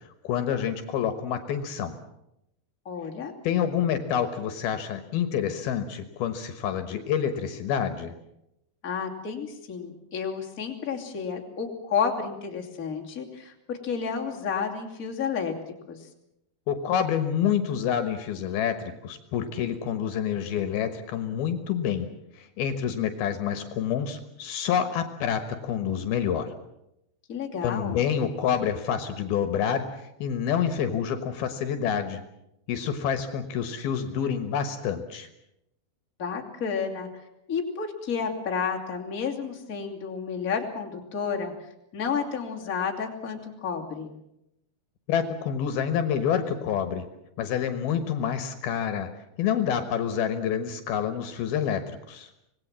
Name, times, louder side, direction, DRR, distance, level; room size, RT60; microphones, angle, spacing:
voice 1, 0.2-2.0 3.4-8.2 16.7-18.8 19.0-22.1 22.4-26.5 27.6-29.8 30.2-32.2 32.7-35.3 45.1-47.1 47.4-49.1 49.4-51.8 52.1-52.3, left 8 dB, 70° left, 9 dB, 3.0 m, -27 dB
voice 2, 2.8-3.3 8.8-15.5 15.9-16.0 27.3-28.0 36.2-37.1 37.5-41.5 41.9-44.1, left 6 dB, 25° left, 0 dB, 2.6 m, -31 dB
26.0 x 19.5 x 7.5 m, 0.83 s
omnidirectional pair, 4.8 m